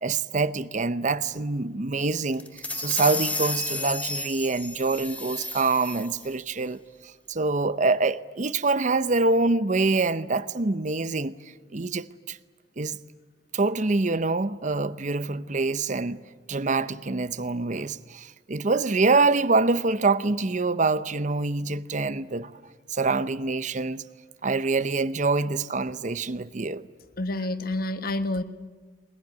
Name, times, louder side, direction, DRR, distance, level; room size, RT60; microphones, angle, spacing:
voice 1, 0.0-6.8 7.3-11.3 11.7-12.4 12.8-13.0 13.5-16.2 16.5-22.5 22.9-24.0 24.4-26.9, right 3 dB, 45° right, 0.8 m, -25 dB
sound 1, 2.3-6.3, left 2 dB, 10° left, 1.0 m, -32 dB
voice 2, 27.2-28.4, left 2 dB, 55° left, 1.2 m, -29 dB
22.0 x 21.0 x 9.5 m
head